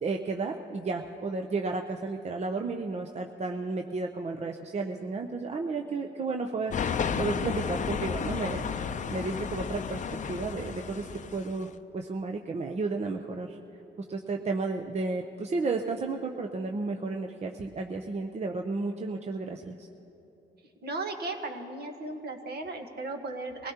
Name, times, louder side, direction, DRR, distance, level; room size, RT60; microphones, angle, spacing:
voice 1, 0.0-10.0 10.3-13.6 14.1-19.9, right 3 dB, 35° right, 4 dB, 0.7 m, -33 dB
sound 1, 6.7-11.6, left 6 dB, 40° left, 0.6 m, -32 dB
voice 2, 20.8-23.7, right 2 dB, 55° right, 4 dB, 1.4 m, -36 dB
23.5 x 16.5 x 2.9 m, 2.9 s
cardioid pair, 90°, 20 cm